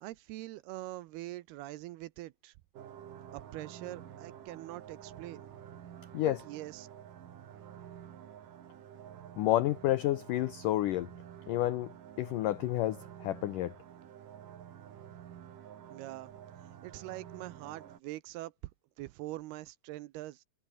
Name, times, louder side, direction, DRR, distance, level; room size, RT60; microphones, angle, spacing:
voice 1, 0.0-2.5 3.3-5.5 6.2-6.9 15.9-16.3 16.8-18.5 19.0-20.4, right 17 dB, 75° right, 2.6 m, -43 dB
sound 1, 2.7-18.0, right 9 dB, 55° right, 3.3 m, -50 dB
voice 2, 9.4-11.1 11.5-11.9 12.2-13.7, left 14 dB, 90° left, 1.8 m, -30 dB
omnidirectional pair, 4.9 m